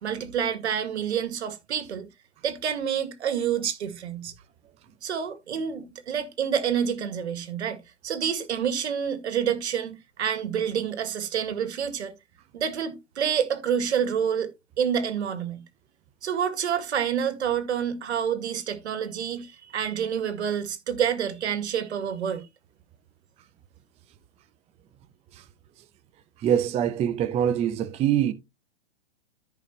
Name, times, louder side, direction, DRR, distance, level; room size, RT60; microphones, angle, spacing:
voice 1, 0.0-2.1 2.4-4.3 5.0-7.8 8.0-12.1 12.5-14.5 14.8-15.6 16.2-22.5, right 8 dB, 70° right, 2.1 m, -28 dB
voice 2, 26.4-28.3, right 10 dB, 20° right, 0.6 m, -24 dB
14.0 x 5.4 x 2.8 m
hypercardioid pair, 120°, 34 cm